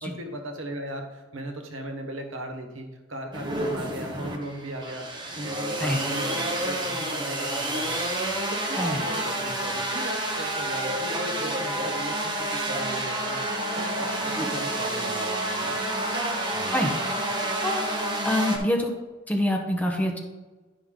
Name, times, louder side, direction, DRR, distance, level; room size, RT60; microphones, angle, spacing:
voice 1, 0.0-5.1 5.3-8.0 8.5-15.8 16.5-16.7, right 1 dB, 75° right, 4 dB, 1.2 m, -37 dB
sound 1, 3.3-18.6, right 1 dB, 20° right, 1.0 m, -29 dB
voice 2, 18.2-18.9 19.3-20.2, left 1 dB, 10° left, 1 dB, 1.0 m, -25 dB
10.5 x 5.5 x 3.8 m, 1.2 s
head